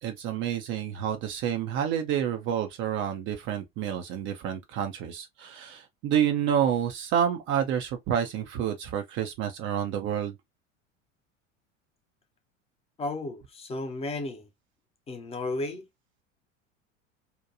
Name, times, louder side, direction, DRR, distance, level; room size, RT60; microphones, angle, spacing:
voice 1, 0.0-10.3, right 9 dB, 30° right, 0.4 m, -29 dB
voice 2, 13.0-14.5 15.1-15.9, left 2 dB, 15° left, 0.5 m, -33 dB
2.9 x 2.2 x 2.4 m
figure-of-eight pair, 75°, 39 cm